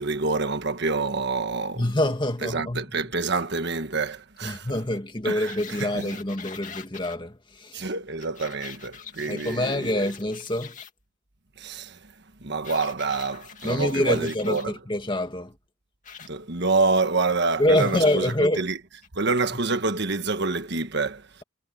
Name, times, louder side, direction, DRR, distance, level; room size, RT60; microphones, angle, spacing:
voice 1, 0.0-1.8 2.4-4.7 5.2-5.5 5.8-6.1 7.7-9.9 11.6-12.1 12.4-14.7 16.2-18.8 19.1-21.4, right 3 dB, 55° right, 1.4 m, -27 dB
voice 2, 1.8-2.8 4.4-7.9 9.3-10.8 13.6-15.6 17.6-18.6, left 1 dB, 25° left, 2.1 m, -26 dB
sound 1, 5.5-7.2 8.2-10.9 12.6-14.7 16.0-16.3 17.7-18.3 19.0-19.1, left 7 dB, 40° left, 2.4 m, -44 dB
head